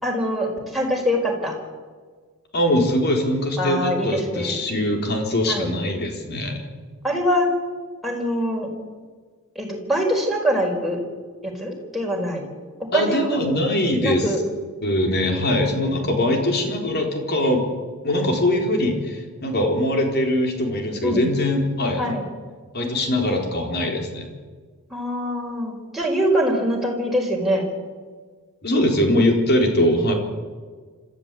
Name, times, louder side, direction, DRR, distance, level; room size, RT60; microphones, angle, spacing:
voice 1, 0.0-1.6 3.6-4.6 5.5-5.7 7.0-7.5 8.0-8.7 9.5-11.0 11.4-12.4 12.8-13.4 14.0-14.4 21.0-21.3 22.0-22.2 24.9-27.6, equal, ahead, -1 dB, 4.6 m, -23 dB
voice 2, 2.5-6.6 12.9-14.3 14.8-17.6 18.0-22.0 22.7-24.3 28.6-30.1, left 1 dB, 45° left, 2 dB, 4.1 m, -22 dB
26.5 x 14.5 x 8.4 m, 1.5 s
head